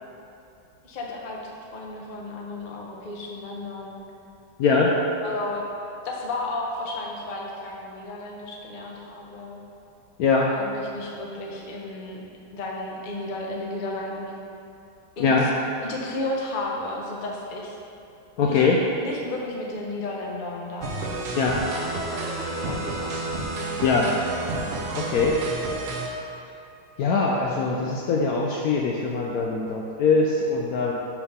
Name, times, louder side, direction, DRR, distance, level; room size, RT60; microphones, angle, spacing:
voice 1, 0.8-4.0 5.2-5.6 6.0-9.6 10.5-12.2 12.5-14.4 15.2-15.5 15.8-17.8 18.4-18.7 19.0-21.3 21.7-23.2, left 2 dB, 50° left, -1 dB, 0.6 m, -33 dB
voice 2, 4.6-5.0 10.2-10.5 15.2-15.5 18.4-18.8 21.3-21.6 23.8-24.1 24.9-25.4 27.0-30.9, left 4 dB, 70° left, -1 dB, 0.9 m, -22 dB
sound 1, 20.8-26.1, right 2 dB, 70° right, 0.6 m, -30 dB
5.4 x 4.7 x 5.5 m, 2.7 s
omnidirectional pair, 1.9 m